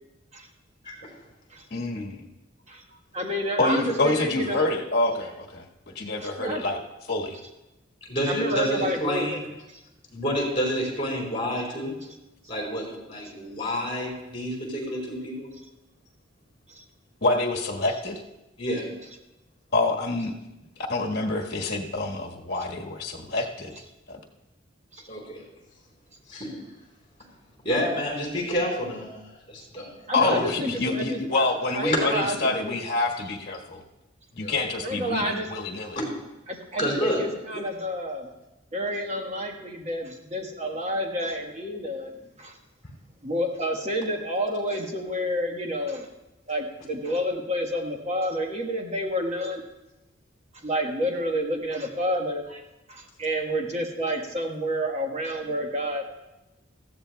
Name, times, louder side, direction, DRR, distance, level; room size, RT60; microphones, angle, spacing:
voice 1, 1.7-2.3 3.6-5.6 5.9-6.8 7.1-7.4 17.2-18.2 19.7-20.3 20.9-23.7 24.1-24.2 30.1-33.8 34.4-36.0, left 2 dB, 55° left, 0 dB, 1.5 m, -27 dB
voice 2, 3.1-4.7 6.2-6.6 8.3-9.4 16.7-16.8 24.9-25.0 30.1-31.2 31.7-32.7 34.8-35.5 36.5-38.3 38.7-42.1 42.4-42.6 43.2-46.1 46.5-49.6 50.6-52.6 52.9-56.0, equal, 35° right, 2 dB, 1.4 m, -29 dB
voice 3, 8.1-9.4 10.1-11.9 12.5-15.5 18.6-18.9 25.1-25.4 26.3-26.7 27.6-29.1 29.5-29.9 30.2-30.4 31.9-32.0 34.3-34.5 36.0-36.1 36.8-37.2 37.5-37.6, equal, 25° left, -2 dB, 4.2 m, -28 dB
18.5 x 14.5 x 2.3 m, 0.99 s
head